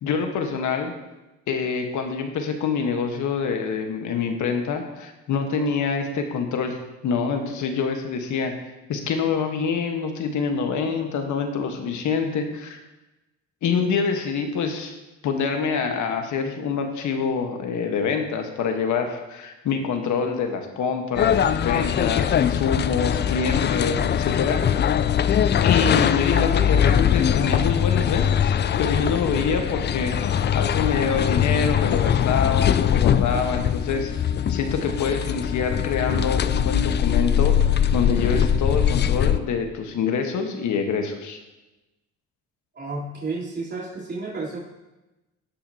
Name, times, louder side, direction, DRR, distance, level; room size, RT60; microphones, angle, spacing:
voice 1, 0.0-0.9 1.5-6.8 7.0-8.5 8.9-12.8 13.6-14.9 15.2-25.0 25.6-37.5 37.9-41.4, left 5 dB, 75° left, 5 dB, 1.3 m, -26 dB
sound 1, 21.1-39.4, left 9 dB, 35° left, 0.4 m, -21 dB
voice 2, 42.7-44.6, right 3 dB, 35° right, -6 dB, 3.4 m, -31 dB
17.5 x 5.8 x 2.8 m, 1.0 s
cardioid pair, 90°, 30 cm